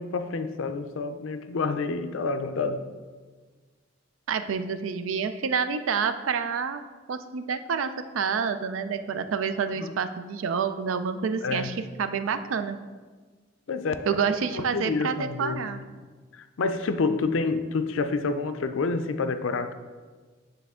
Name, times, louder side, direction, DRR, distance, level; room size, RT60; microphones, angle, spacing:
voice 1, 0.0-2.8 9.8-9.9 11.4-11.9 13.7-14.2 14.5-15.7 16.3-19.7, left 4 dB, 80° left, 9 dB, 0.4 m, -28 dB
voice 2, 4.3-6.8 7.1-12.8 14.1-15.8, right 6 dB, 85° right, 10 dB, 0.4 m, -28 dB
9.7 x 3.4 x 3.6 m, 1.4 s
head